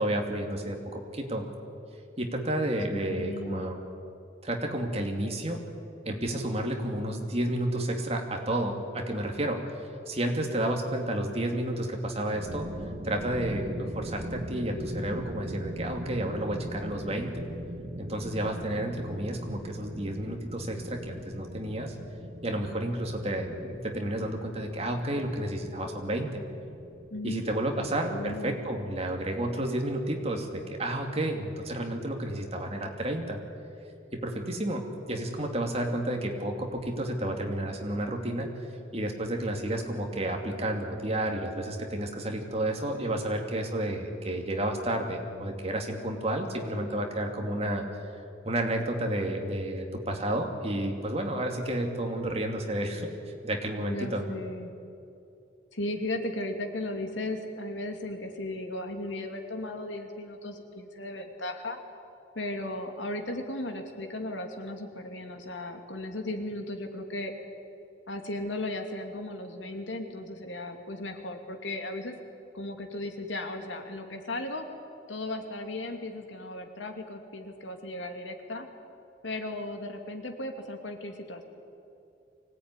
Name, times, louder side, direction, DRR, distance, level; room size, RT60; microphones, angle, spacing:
voice 1, 0.0-1.4 2.2-3.8 4.4-5.6 6.0-9.6 10.1-12.7 13.0-17.4 18.0-21.9 22.4-26.4 27.2-33.4 34.1-38.5 38.9-48.0 48.4-53.1 53.4-54.2, right 1 dB, 35° right, 2 dB, 2.7 m, -31 dB
voice 2, 2.9-3.7 27.1-27.4 27.8-28.6 53.8-54.7 55.7-61.8 62.3-67.3 68.1-72.1 72.5-74.6 75.1-78.7 79.2-81.4, left 1 dB, 85° left, 5 dB, 2.7 m, -36 dB
sound 1, 12.2-31.0, equal, 50° right, 1.8 m, -41 dB
24.0 x 17.5 x 9.9 m, 2.6 s
head